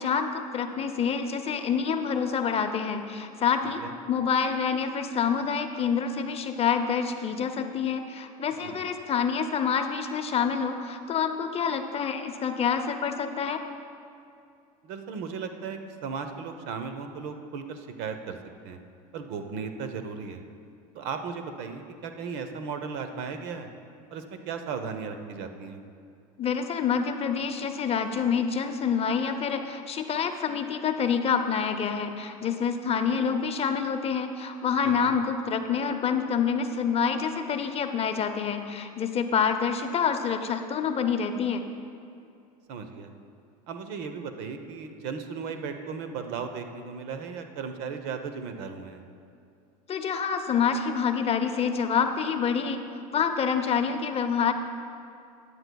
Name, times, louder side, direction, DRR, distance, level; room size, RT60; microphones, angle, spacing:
voice 1, 0.0-13.6 26.4-41.6 49.9-52.8 53.1-54.5, left 6 dB, 30° left, 7 dB, 0.7 m, -27 dB
voice 2, 14.8-18.4 18.6-18.8 19.1-20.4 20.9-23.7 24.1-25.8 34.8-35.2 42.7-43.1 43.7-49.0, right 5 dB, 60° right, 7 dB, 0.9 m, -36 dB
15.0 x 9.7 x 2.3 m, 2.5 s
hypercardioid pair, 95°, 19 cm